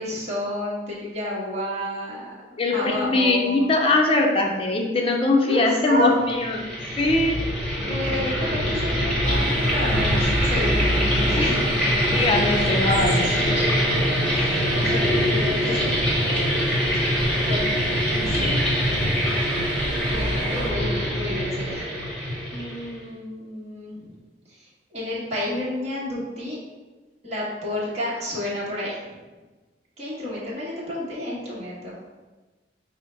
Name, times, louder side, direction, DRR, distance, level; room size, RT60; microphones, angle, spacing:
voice 1, 0.0-2.2 2.7-3.7 5.4-6.1 7.8-10.9 11.2-11.6 14.3-16.0 16.9-17.2 17.5-17.8 18.1-18.5 20.1-21.9 22.5-24.2 24.5-26.6 27.2-29.2 30.0-32.0, left 1 dB, 40° right, -7 dB, 1.1 m, -30 dB
voice 2, 2.6-6.6 7.0-7.4 11.4-11.5 12.1-13.7, left 2 dB, 30° left, 1 dB, 0.5 m, -21 dB
sound 1, 6.3-23.0, equal, 5° left, 1.1 m, -23 dB
sound 2, 9.2-20.7, right 1 dB, 10° right, 1.0 m, -38 dB
5.3 x 2.0 x 4.4 m, 1.2 s
head